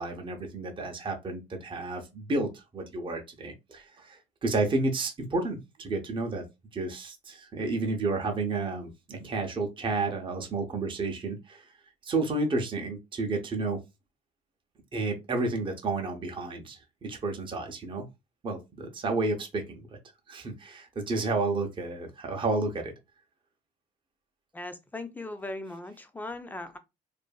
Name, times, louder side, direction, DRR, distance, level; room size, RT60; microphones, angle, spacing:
voice 1, 0.0-6.4 6.7-11.6 12.1-13.8 14.9-18.0 18.4-19.9 20.3-22.9, right 3 dB, 30° right, 0.7 m, -31 dB
voice 2, 24.5-26.8, left 2 dB, 10° left, 0.4 m, -38 dB
2.6 x 2.5 x 2.3 m
cardioid pair, 110°, 17 cm